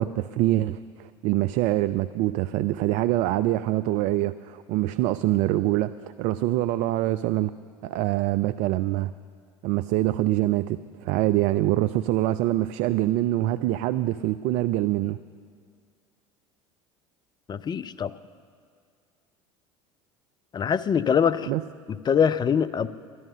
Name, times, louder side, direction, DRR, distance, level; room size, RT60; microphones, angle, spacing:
voice 1, 0.0-7.5 7.8-9.1 9.6-15.2 21.5-21.6, right 15 dB, 55° right, 14 dB, 0.4 m, -25 dB
voice 2, 17.5-18.1 20.5-21.5 22.1-22.9, left 7 dB, 25° left, 14 dB, 0.5 m, -23 dB
12.0 x 11.0 x 6.7 m, 2.2 s
hypercardioid pair, 70°, 16 cm